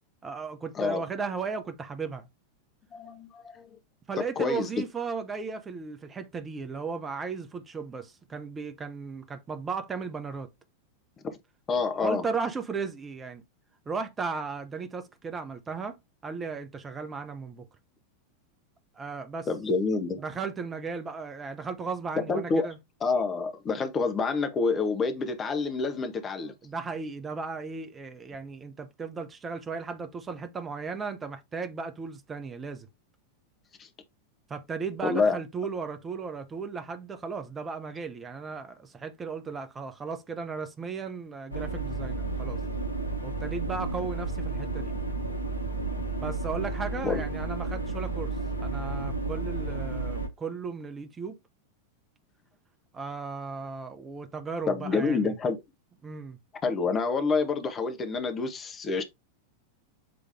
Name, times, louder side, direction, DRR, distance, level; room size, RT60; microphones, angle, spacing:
voice 1, 0.2-2.3 4.1-10.5 12.0-13.4 13.9-16.0 16.2-17.7 19.0-19.5 20.2-22.8 26.6-32.9 34.5-42.6 43.2-44.9 46.2-48.3 48.6-51.4 52.9-55.3 56.0-56.4, right 5 dB, 20° right, 1.0 m, -35 dB
voice 2, 2.9-3.8 4.4-4.7 11.2-11.4 11.7-12.2 19.5-20.2 22.3-22.7 23.0-26.5 33.8-33.9 35.0-35.4 47.0-47.2 54.7-55.6 56.6-59.0, left 4 dB, 25° left, 1.4 m, -27 dB
sound 1, 41.5-50.3, right 3 dB, 85° left, 1.0 m, -32 dB
7.8 x 3.4 x 3.6 m
figure-of-eight pair, 90°, 0 cm